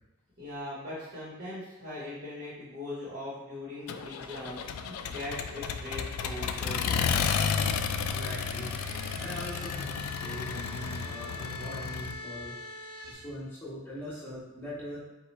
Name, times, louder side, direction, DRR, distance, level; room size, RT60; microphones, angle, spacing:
voice 1, 0.4-7.0, left 1 dB, 45° right, -10 dB, 1.1 m, -40 dB
Accelerating revving vroom, 3.9-12.1, left 6 dB, 85° left, 0.3 m, -32 dB
sound 1, 6.2-13.1, left 2 dB, 75° right, 0.8 m, -44 dB
voice 2, 7.9-12.5 13.0-15.0, left 1 dB, 10° left, -9 dB, 1.2 m, -41 dB
4.6 x 2.3 x 4.1 m, 1.0 s
head